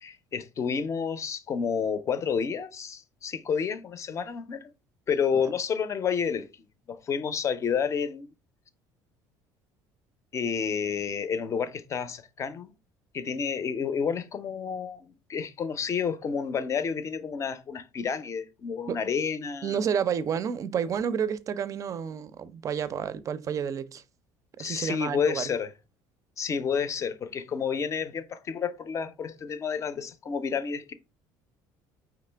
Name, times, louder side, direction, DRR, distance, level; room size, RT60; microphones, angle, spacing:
voice 1, 0.0-4.7 5.1-6.5 6.9-8.3 10.3-12.7 13.1-19.8 24.6-25.7 26.4-30.9, left 6 dB, 35° left, 0.6 m, -30 dB
voice 2, 19.6-24.0 24.6-25.5, right 7 dB, 40° right, 0.4 m, -30 dB
4.9 x 3.0 x 3.3 m
supercardioid pair, 105°, 9 cm